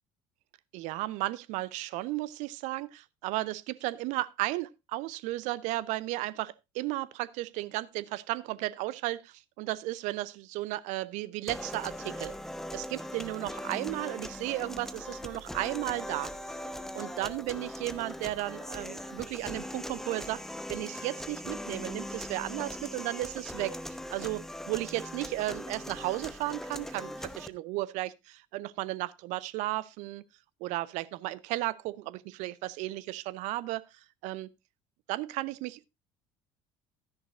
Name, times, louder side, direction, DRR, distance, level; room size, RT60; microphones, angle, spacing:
voice 1, 0.7-12.3 12.7-16.3 16.9-20.4 20.7-23.8 24.1-30.2 30.6-34.5 35.1-35.8, right 17 dB, 55° right, 0.6 m, -34 dB
sound 1, 11.5-27.5, left 1 dB, 5° left, 0.9 m, -40 dB
13.0 x 10.5 x 2.5 m
figure-of-eight pair, 60°, 15 cm